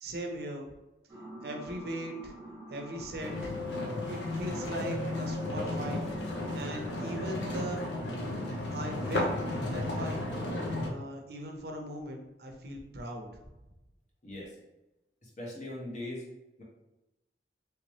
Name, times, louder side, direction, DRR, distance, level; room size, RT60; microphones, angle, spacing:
voice 1, 0.0-0.7 1.4-2.3 2.7-3.5 4.1-6.0 6.5-7.9 8.7-9.4 9.7-10.2 10.8-13.3, right 1 dB, 65° right, 2 dB, 0.6 m, -39 dB
sound 1, 1.1-9.3, right 1 dB, 10° right, 1.0 m, -46 dB
sound 2, 3.2-10.9, left 2 dB, 90° left, 0.7 m, -34 dB
voice 2, 14.2-14.6 15.2-16.3 16.6-16.7, left 1 dB, 40° left, -3 dB, 0.9 m, -40 dB
3.2 x 2.8 x 3.1 m, 0.99 s
head